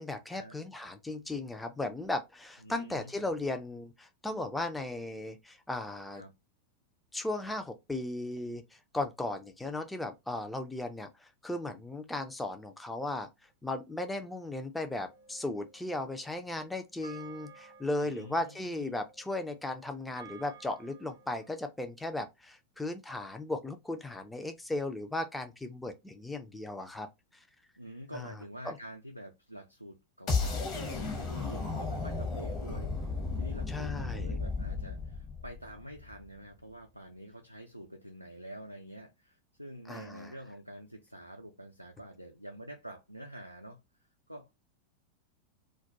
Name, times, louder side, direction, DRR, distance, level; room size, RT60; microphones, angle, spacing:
voice 1, 0.0-6.2 7.1-13.3 13.6-27.1 28.1-28.3 28.7-28.8 33.7-34.3 39.9-40.3, left 2 dB, 5° left, 0.3 m, -36 dB
voice 2, 2.6-3.3 6.1-6.3 18.0-19.0 27.8-43.8 44.3-44.6, equal, 90° right, 0.3 m, -47 dB
sound 1, 14.9-21.5, right 5 dB, 85° left, 0.5 m, -55 dB
sound 2, 30.3-36.2, left 4 dB, 35° left, 0.7 m, -34 dB
2.2 x 2.1 x 2.7 m
figure-of-eight pair, 90°, 0 cm